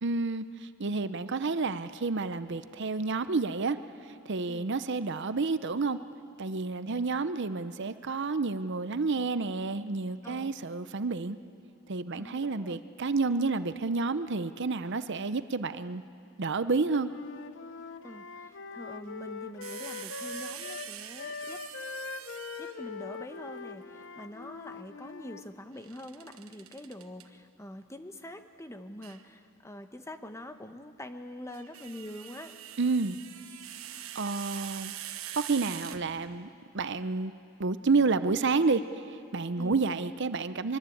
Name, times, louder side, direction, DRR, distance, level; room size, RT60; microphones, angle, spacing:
voice 1, 0.0-3.8 4.3-6.0 6.4-11.4 11.9-16.0 16.4-17.1 32.8-33.2 33.8-34.9 35.4-36.5 36.7-37.3 37.6-40.8, right 4 dB, 55° right, 12 dB, 0.7 m, -30 dB
voice 2, 10.2-10.5 12.1-12.8 18.0-21.6 22.6-32.5 39.6-39.9, left 1 dB, 15° left, 8 dB, 1.0 m, -45 dB
Wind instrument woodwind instrument, 17.0-20.9 21.2-25.5, left 4 dB, 60° left, 1.0 m, -42 dB
sound 1, 19.6-22.9 25.8-27.2 29.0-29.2 31.3-36.5, right 11 dB, 80° right, 1.3 m, -44 dB
23.5 x 23.0 x 8.6 m, 2.3 s
head